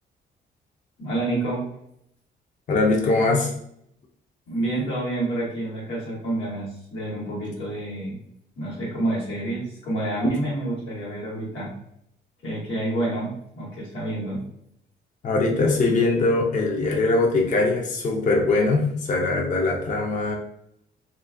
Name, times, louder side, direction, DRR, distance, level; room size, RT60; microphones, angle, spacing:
voice 1, 1.0-1.7 4.5-8.2 8.6-11.7 12.4-14.4, right 1 dB, 90° left, -5 dB, 1.3 m, -28 dB
voice 2, 2.7-3.5 10.2-10.3 15.2-20.4, left 3 dB, 40° left, 1 dB, 0.5 m, -21 dB
2.4 x 2.4 x 2.4 m, 0.73 s
cardioid pair, 90°, 20 cm